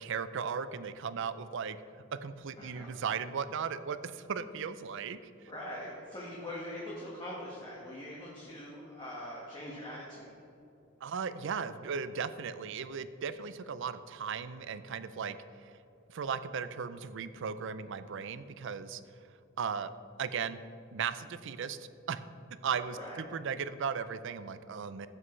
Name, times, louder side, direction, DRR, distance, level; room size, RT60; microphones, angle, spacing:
voice 1, 0.0-1.8 2.2-5.2 11.0-15.4 16.1-19.0 19.6-19.9 20.2-20.6 20.9-22.2 22.6-25.1, right 6 dB, 65° right, 13 dB, 0.5 m, -36 dB
voice 2, 2.6-2.9 5.5-10.3 22.9-23.2, left 1 dB, 20° left, -6 dB, 1.6 m, -42 dB
15.5 x 7.4 x 3.2 m, 2.7 s
head